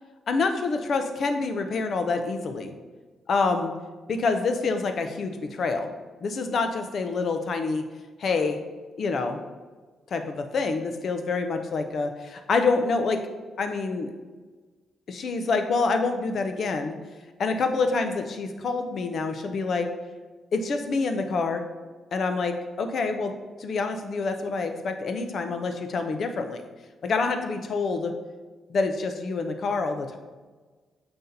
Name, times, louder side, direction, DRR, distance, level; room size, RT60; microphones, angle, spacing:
voice 1, 0.3-2.7 3.3-3.7 4.1-5.9 6.2-7.8 8.2-8.6 9.0-9.4 10.1-13.2 13.6-14.1 15.1-16.9 17.4-19.9 20.5-21.6 22.1-23.3 23.6-26.6 27.0-28.1 28.7-30.2, left 4 dB, 60° left, 6 dB, 0.7 m, -27 dB
6.9 x 5.5 x 2.8 m, 1.4 s
hypercardioid pair, 50°, 0 cm